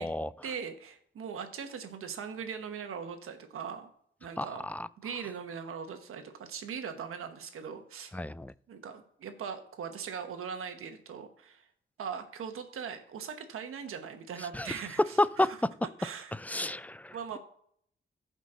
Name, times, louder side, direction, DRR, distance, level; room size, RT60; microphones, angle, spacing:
voice 1, 0.4-3.9 4.2-4.7 5.0-8.1 8.7-11.7 12.0-15.6 16.0-16.3 16.7-16.8 17.1-17.4, right 6 dB, 85° right, 1.2 m, -40 dB
voice 2, 4.4-4.9 8.1-8.5 14.5-14.7 15.2-15.7 16.3-17.4, left 1 dB, 5° left, 0.3 m, -31 dB
15.0 x 5.3 x 3.8 m
cardioid pair, 90°, 21 cm